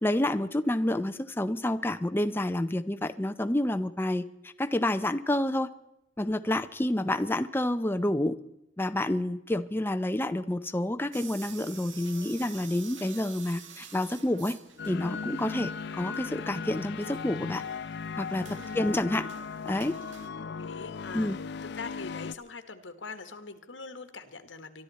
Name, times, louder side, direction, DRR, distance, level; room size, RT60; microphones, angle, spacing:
voice 1, 0.0-5.7 6.2-8.4 8.8-14.6 14.9-17.6 18.2-18.5 18.7-19.3 19.7-20.0 21.1-21.4, left 1 dB, 10° left, 9 dB, 0.5 m, -29 dB
workers cuban +bandsaw, 11.1-20.3, right 7 dB, 85° right, 1.5 m, -49 dB
sound 1, 14.8-22.4, left 5 dB, 65° left, 0.5 m, -37 dB
voice 2, 20.4-21.3 21.7-24.8, left 4 dB, 90° left, 9 dB, 1.6 m, -43 dB
23.0 x 12.5 x 4.2 m, 0.89 s
head